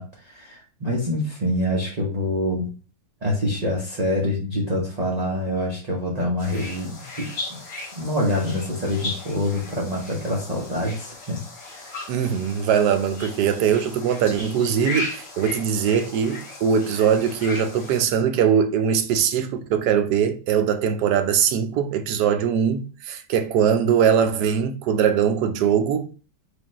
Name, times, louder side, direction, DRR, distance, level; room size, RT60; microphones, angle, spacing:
voice 1, 0.0-2.7 3.2-7.6 8.0-11.4 11.7-12.0, left 1 dB, 35° right, 0.6 m, -26 dB
sound 1, 6.4-18.0, left 2 dB, 85° left, 2.2 m, -37 dB
voice 2, 12.1-26.1, right 8 dB, 75° right, 1.1 m, -21 dB
4.9 x 2.4 x 3.0 m
omnidirectional pair, 1.9 m